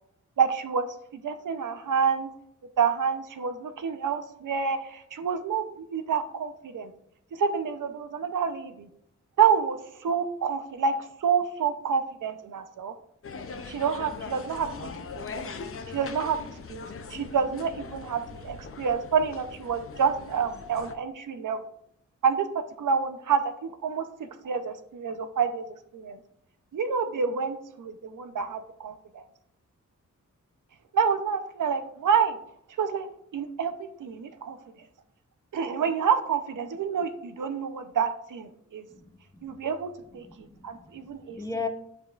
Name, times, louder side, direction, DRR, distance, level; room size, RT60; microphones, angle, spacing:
voice 1, 0.4-0.9 1.1-2.3 2.8-6.9 7.3-8.9 9.4-10.9 11.2-12.9 13.7-15.5 15.9-16.4 16.7-16.8 17.1-21.6 22.2-22.5 22.8-24.1 24.4-25.6 25.9-26.2 26.7-29.2 30.9-32.4 32.8-33.1 33.3-33.7 34.0-34.6 35.5-38.8 39.4-41.4, right 6 dB, 85° right, 9 dB, 0.7 m, -28 dB
sound 1, 13.2-20.9, left 4 dB, 45° left, 0.6 m, -41 dB
voice 2, 38.9-39.5 40.1-41.7, left 4 dB, 10° left, 5 dB, 0.7 m, -38 dB
11.5 x 5.2 x 2.4 m, 0.74 s
wide cardioid pair, 145°, 31 cm